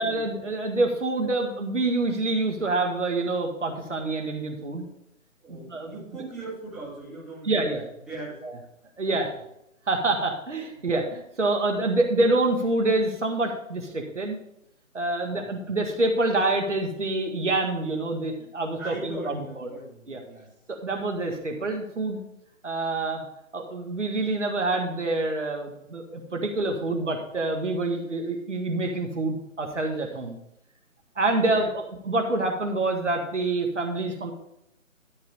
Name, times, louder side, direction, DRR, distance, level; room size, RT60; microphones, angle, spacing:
voice 1, 0.0-4.9 5.5-5.9 7.4-7.8 8.4-8.5 9.0-9.3 9.9-14.4 14.9-19.7 20.1-20.2 20.7-22.2 22.6-23.2 23.5-30.4 31.2-34.3, right 2 dB, 60° right, 3 dB, 1.8 m, -26 dB
voice 2, 5.4-7.6 8.1-8.3 9.0-9.4 10.8-10.9 15.2-15.5 18.8-20.5 31.5-31.7, right 2 dB, ahead, -12 dB, 2.4 m, -40 dB
12.5 x 4.9 x 5.5 m, 0.80 s
figure-of-eight pair, 150°, 41 cm